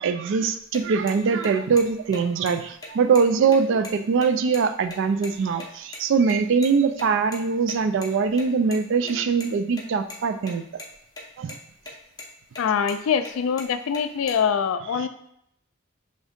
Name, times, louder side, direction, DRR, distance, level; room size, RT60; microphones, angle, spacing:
voice 1, 0.0-10.8 11.4-11.6 14.9-15.1, right 5 dB, 65° right, 8 dB, 0.3 m, -22 dB
sound 1, 0.6-5.7 5.9-6.0 6.3-6.4 6.6-6.7 7.0-7.1 7.3-7.4 7.7-8.8 9.0-9.5 9.8-10.5 10.8-11.2 11.5-11.9 12.2-12.3 12.6-13.0 13.2-14.4, left 2 dB, 20° left, 0.6 m, -39 dB
voice 2, 12.6-15.1, left 7 dB, 80° left, 10 dB, 0.3 m, -24 dB
3.6 x 2.7 x 3.5 m, 0.73 s
head